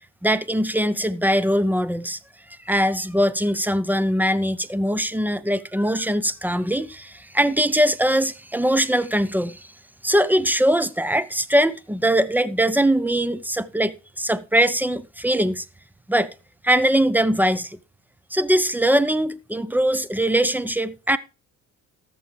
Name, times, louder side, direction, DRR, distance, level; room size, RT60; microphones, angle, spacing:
voice 1, 0.2-2.2 2.6-9.7 10.0-15.6 16.1-16.3 16.6-17.8 18.3-21.2, equal, 5° right, 0.5 m, -21 dB
18.5 x 6.8 x 3.1 m
cardioid pair, 105°, 31 cm